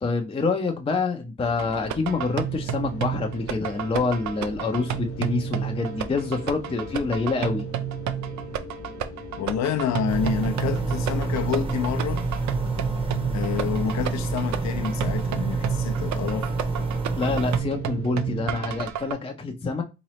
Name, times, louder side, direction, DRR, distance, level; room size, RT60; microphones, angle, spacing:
voice 1, 0.0-7.6 17.2-19.8, left 3 dB, 20° left, 0.5 m, -27 dB
sound 1, 1.4-18.9, left 2 dB, 45° left, 1.0 m, -41 dB
sound 2, 1.6-19.1, right 10 dB, 65° right, 0.5 m, -31 dB
voice 2, 9.4-12.3 13.3-16.5, left 8 dB, 65° left, 0.6 m, -28 dB
sound 3, 10.1-17.6, right 3 dB, 20° right, 0.9 m, -27 dB
3.8 x 3.0 x 3.0 m
cardioid pair, 90°, 30 cm